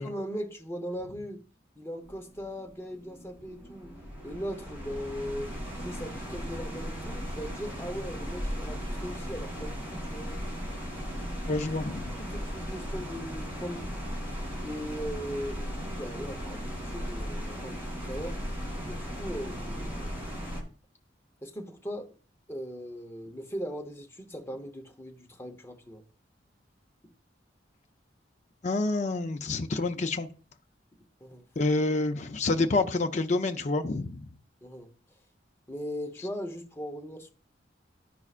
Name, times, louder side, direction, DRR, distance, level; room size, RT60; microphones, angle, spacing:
voice 1, 0.0-1.4 1.8-3.9 4.2-5.5 5.8-10.3 11.5-11.7 12.2-13.9 14.6-18.4 18.8-20.1 21.4-22.1 22.5-26.0 31.2-31.5 34.6-34.9 35.7-37.3, equal, 15° left, 0.9 m, -39 dB
sound 1, 2.0-20.6, equal, 10° right, 2.1 m, -37 dB
voice 2, 11.5-12.0 28.6-30.3 31.6-34.3, left 3 dB, 40° left, 0.5 m, -28 dB
11.0 x 4.7 x 2.4 m
head